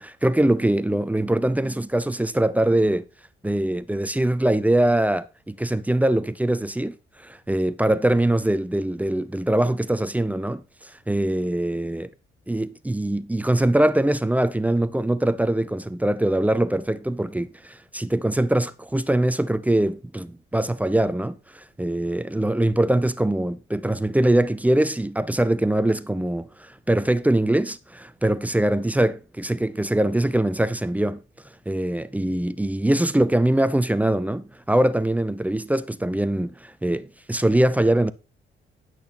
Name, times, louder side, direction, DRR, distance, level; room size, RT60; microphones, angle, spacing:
voice 1, 0.0-3.0 3.4-12.1 12.5-31.2 31.7-38.1, right 1 dB, 5° right, 0.6 m, -23 dB
10.5 x 6.2 x 4.3 m
cardioid pair, 90°, 20 cm